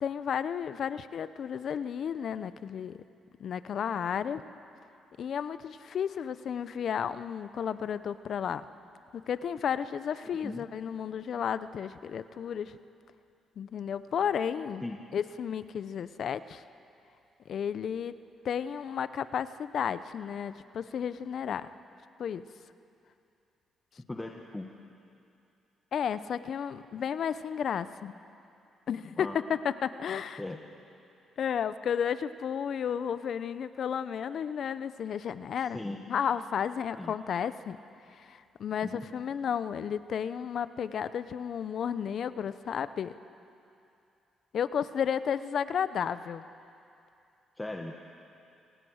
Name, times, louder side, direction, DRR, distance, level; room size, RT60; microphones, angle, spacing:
voice 1, 0.0-3.0 3.4-4.4 5.2-8.6 9.1-12.8 13.6-14.8 15.1-16.6 17.5-18.2 18.4-21.7 22.2-22.4 25.9-28.1 28.9-30.4 31.4-35.8 36.1-37.8 38.1-43.1 44.5-46.4, left 8 dB, 60° left, 14 dB, 0.7 m, -32 dB
voice 2, 24.1-24.7 29.2-29.4 30.4-30.6 35.6-36.0 37.0-37.1 38.8-39.1 47.6-48.0, left 2 dB, 15° left, 2 dB, 1.5 m, -38 dB
27.0 x 19.0 x 6.4 m, 2.6 s
cardioid pair, 90°, 0 cm